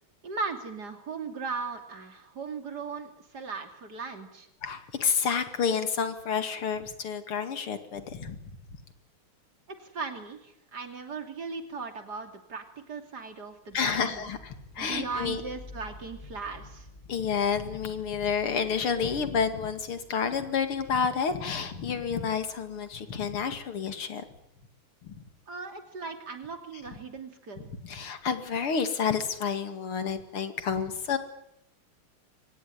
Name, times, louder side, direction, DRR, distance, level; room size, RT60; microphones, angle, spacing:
voice 1, 0.2-4.5 9.8-14.3 14.8-16.9 25.5-27.7, right 4 dB, 50° right, 6 dB, 3.4 m, -38 dB
voice 2, 4.6-8.4 13.7-15.4 17.1-24.2 25.0-25.2 27.9-31.2, left 6 dB, 80° left, 8 dB, 3.1 m, -29 dB
sound 1, 13.7-23.5, left 2 dB, 15° left, 7.9 m, -51 dB
24.5 x 19.0 x 10.0 m, 0.79 s
omnidirectional pair, 2.4 m